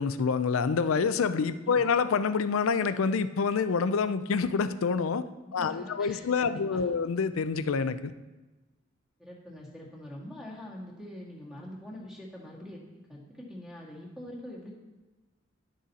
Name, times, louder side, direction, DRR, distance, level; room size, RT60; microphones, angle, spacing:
voice 1, 0.0-5.3 5.5-8.1, left 5 dB, 85° left, 13 dB, 0.5 m, -27 dB
voice 2, 5.6-7.0 9.2-12.8 13.1-14.8, left 1 dB, 5° right, -3 dB, 1.7 m, -44 dB
11.0 x 6.3 x 4.1 m, 1.2 s
head